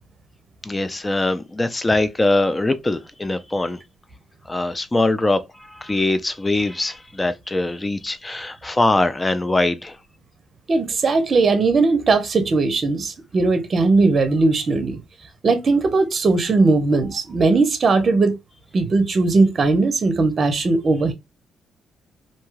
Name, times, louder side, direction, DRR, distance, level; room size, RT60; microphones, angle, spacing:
voice 1, 0.6-3.8 4.5-10.0, left 2 dB, 20° left, 0.4 m, -22 dB
voice 2, 10.7-15.0 15.4-18.3 18.7-21.1, right 3 dB, 45° right, 0.6 m, -18 dB
2.6 x 2.2 x 3.0 m
cardioid pair, 90°, 0 cm